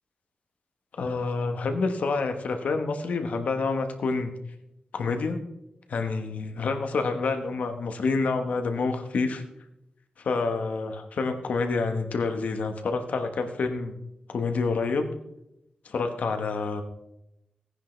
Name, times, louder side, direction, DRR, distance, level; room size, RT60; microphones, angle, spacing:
voice 1, 1.0-4.3 4.9-5.4 5.9-9.4 10.2-13.9 14.3-15.1 15.8-16.8, left 4 dB, 70° left, 6 dB, 1.3 m, -28 dB
17.0 x 10.0 x 3.3 m, 0.84 s
wide cardioid pair, 155°, 3 cm